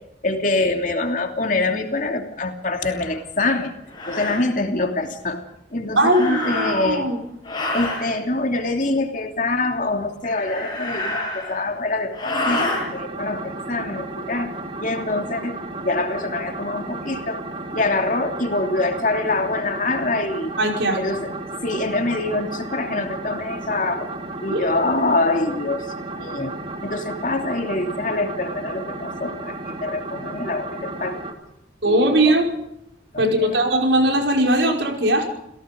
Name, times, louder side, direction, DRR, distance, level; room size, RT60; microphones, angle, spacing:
voice 1, 0.2-3.7 4.1-5.4 5.7-7.1 7.7-14.5 14.8-15.6 15.8-17.4 17.7-20.5 21.0-21.3 21.6-24.1 24.4-25.9 26.2-26.5 26.8-31.2 31.8-32.4 33.1-33.5, left 2 dB, 45° left, 4 dB, 2.9 m, -25 dB
sound 1, 3.0-3.1 3.9-4.4 6.0-7.0 7.4-8.1 10.2-11.7 12.1-12.8, left 1 dB, 25° left, 7.9 m, -27 dB
voice 2, 6.0-7.2 20.6-21.0 24.5-24.8 31.8-32.5 33.2-35.3, right 1 dB, 85° right, 2 dB, 5.3 m, -19 dB
sound 2, 12.7-31.3, right 2 dB, 30° right, 2.8 m, -33 dB
28.5 x 17.0 x 5.3 m, 0.82 s
head